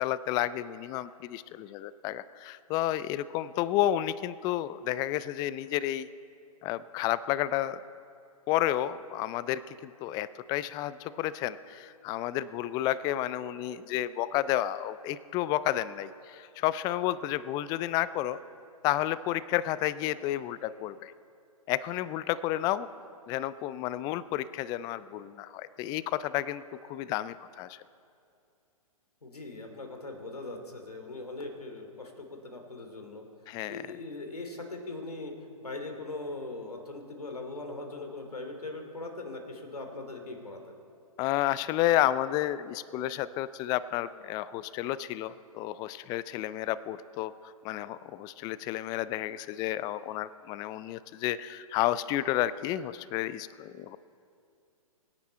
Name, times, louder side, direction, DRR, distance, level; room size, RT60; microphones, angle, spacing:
voice 1, 0.0-6.1 6.6-7.8 8.5-18.4 18.8-21.1 21.7-22.9 23.3-27.8 33.5-33.8 41.2-54.0, left 13 dB, 20° left, 17 dB, 0.4 m, -31 dB
voice 2, 29.2-33.3 33.7-35.3 35.6-40.8, left 2 dB, 85° left, 4 dB, 2.7 m, -40 dB
24.0 x 10.0 x 4.4 m, 2.5 s
figure-of-eight pair, 120°, 19 cm